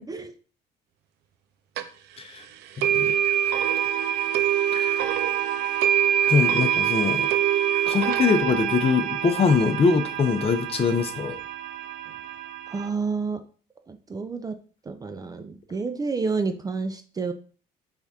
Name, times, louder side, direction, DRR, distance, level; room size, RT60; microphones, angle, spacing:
sound 1, 1.8-1.9 2.8-12.9, right 10 dB, 80° right, 0.5 m, -25 dB
voice 1, 2.8-3.1 4.7-5.0 6.3-7.3 7.8-11.4, left 5 dB, 35° left, 8 dB, 0.6 m, -23 dB
voice 2, 12.7-13.4 13.9-14.5 14.9-17.3, right 4 dB, 20° right, 7 dB, 0.4 m, -29 dB
4.1 x 3.5 x 3.5 m, 0.40 s
cardioid pair, 110°, 17 cm